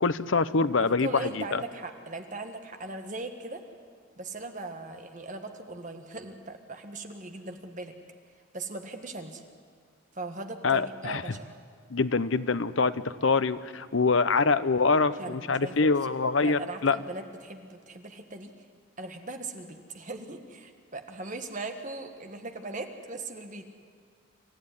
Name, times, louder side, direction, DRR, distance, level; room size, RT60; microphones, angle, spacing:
voice 1, 0.0-1.6 10.6-11.2 11.9-17.0, left 4 dB, 65° left, 13 dB, 0.7 m, -25 dB
voice 2, 0.8-3.6 4.2-7.9 8.5-9.4 10.1-11.6 15.2-15.9 16.4-18.5 19.0-23.7, right 2 dB, 35° right, 6 dB, 1.5 m, -39 dB
27.0 x 14.0 x 9.8 m, 2.1 s
head